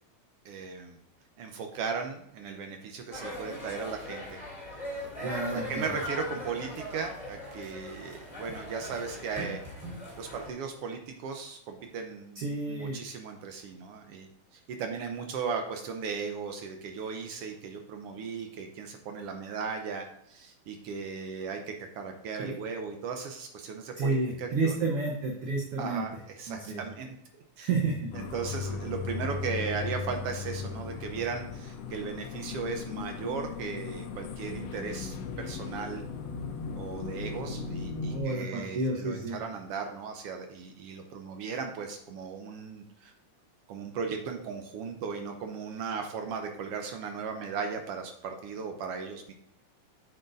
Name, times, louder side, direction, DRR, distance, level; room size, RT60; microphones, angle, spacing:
voice 1, 0.4-1.0 1.4-4.4 5.5-9.6 10.2-24.8 25.8-27.2 27.6-27.7 28.1-36.0 36.7-43.1 43.7-49.3, right 5 dB, 75° right, 4 dB, 1.3 m, -37 dB
sound 1, 3.1-10.5, left 1 dB, 15° left, 2.7 m, -40 dB
voice 2, 5.2-5.9 12.3-13.0 22.4-22.5 24.0-26.0 26.5-26.8 27.6-28.1 38.1-39.4, right 3 dB, 60° right, 0 dB, 1.6 m, -30 dB
sound 2, 28.1-38.2, left 5 dB, 75° left, 1.7 m, -37 dB
8.5 x 6.5 x 2.6 m, 0.76 s
omnidirectional pair, 3.5 m